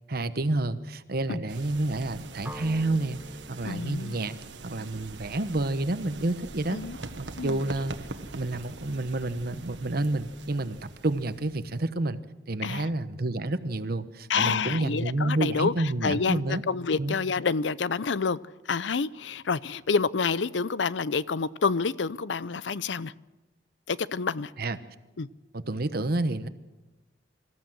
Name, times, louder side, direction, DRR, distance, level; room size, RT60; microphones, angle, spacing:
voice 1, 0.1-3.2 3.5-4.4 4.6-6.8 7.2-7.9 8.3-12.2 12.5-16.6 17.0-17.2 24.6-24.8 25.5-26.5, right 2 dB, 55° right, 1.1 m, -29 dB
sound 1, 1.5-11.8, right 3 dB, 85° right, 1.5 m, -43 dB
sound 2, 2.4-6.4, equal, 10° right, 1.0 m, -47 dB
voice 2, 3.6-4.3 6.7-7.0 7.4-7.6 12.6-12.9 14.3-18.4 18.7-23.1 23.9-24.5 25.2-25.3, left 5 dB, 90° left, 0.6 m, -28 dB
25.0 x 14.5 x 7.8 m
head